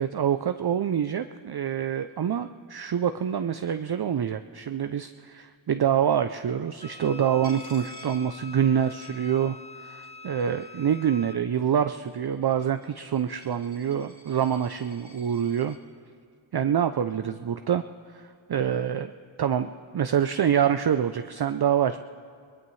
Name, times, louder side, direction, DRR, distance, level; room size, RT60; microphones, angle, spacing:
voice 1, 0.0-15.8 16.5-17.8 18.1-19.1 19.4-22.0, right 8 dB, 55° right, 9 dB, 0.5 m, -26 dB
Wind instrument woodwind instrument, 6.8-11.4, left 4 dB, 15° left, 0.5 m, -45 dB
Coin (dropping), 7.4-9.8 10.0-10.8 11.5-15.8, right 1 dB, 20° right, 2.9 m, -53 dB
21.0 x 20.5 x 3.2 m, 2.1 s
wide cardioid pair, 55°, 48 cm